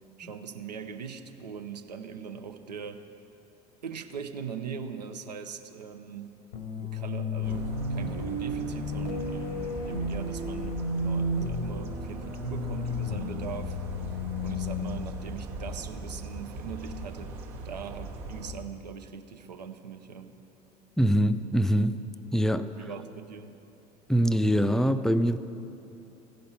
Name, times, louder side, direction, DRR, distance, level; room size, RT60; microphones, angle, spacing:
voice 1, 0.2-3.0 3.8-6.3 6.8-13.8 14.4-17.4 17.6-20.3 22.8-23.6, right 7 dB, 85° right, 8 dB, 0.6 m, -40 dB
sound 1, 6.5-16.4, left 2 dB, 75° left, 0.8 m, -33 dB
sound 2, 7.4-18.5, right 2 dB, 70° right, 1.0 m, -40 dB
voice 2, 21.0-22.0 22.3-22.7 24.1-25.4, equal, ahead, 12 dB, 0.4 m, -23 dB
15.5 x 5.2 x 5.7 m, 2.9 s
hypercardioid pair, 70°, 20 cm